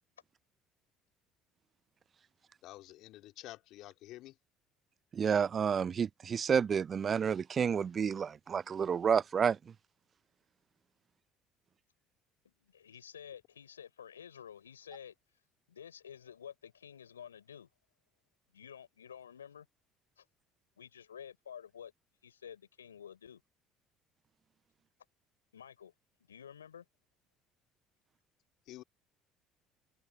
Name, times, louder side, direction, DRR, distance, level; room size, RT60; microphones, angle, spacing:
voice 1, 2.6-4.3 28.7-28.8, left 16 dB, 60° left, 3.6 m, -49 dB
voice 2, 5.1-9.6, right 7 dB, 40° right, 0.4 m, -30 dB
voice 3, 12.4-15.1 15.7-17.7 18.5-19.7 20.2-20.3 20.8-21.9 22.2-23.4 25.5-25.9 26.2-26.9, left 8 dB, 85° left, 4.5 m, -51 dB
hypercardioid pair, 60°, 0 cm